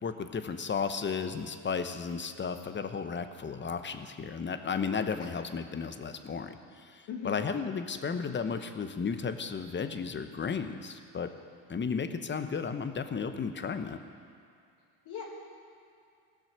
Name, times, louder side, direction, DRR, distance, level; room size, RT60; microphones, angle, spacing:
voice 1, 0.0-11.3 11.7-14.0, left 5 dB, 25° left, 8 dB, 0.9 m, -34 dB
voice 2, 7.1-7.5 15.1-15.2, left 7 dB, 70° left, -5 dB, 2.3 m, -38 dB
16.5 x 6.3 x 6.7 m, 2.5 s
supercardioid pair, 75°, 43 cm